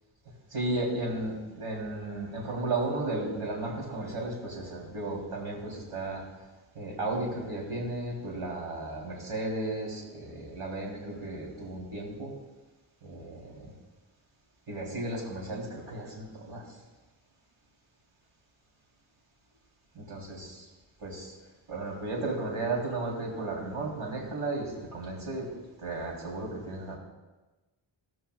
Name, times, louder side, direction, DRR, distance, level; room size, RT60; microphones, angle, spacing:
voice 1, 0.5-6.2 6.8-12.3 13.0-13.7 14.7-16.6 20.1-20.7 21.0-21.3 21.7-25.5 25.8-27.0, right 2 dB, 80° right, -2 dB, 3.6 m, -34 dB
16.5 x 13.5 x 2.4 m, 1.2 s
wide cardioid pair, 135°, 49 cm